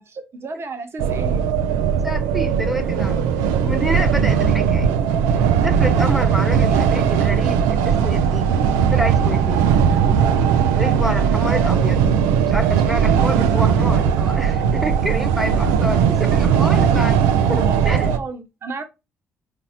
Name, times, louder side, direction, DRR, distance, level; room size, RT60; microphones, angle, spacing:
voice 1, 0.0-1.4 11.5-11.8 16.2-16.3 17.5-18.8, right 3 dB, 45° right, 1.0 m, -33 dB
sound 1, 1.0-18.2, right 7 dB, 80° right, 0.4 m, -18 dB
voice 2, 1.9-3.2 3.6-4.9 5.6-8.5 8.9-9.6 10.1-10.2 10.7-12.0 12.5-17.2 17.5-18.1, equal, 5° right, 1.0 m, -28 dB
4.0 x 2.6 x 4.3 m
hypercardioid pair, 45°, 6 cm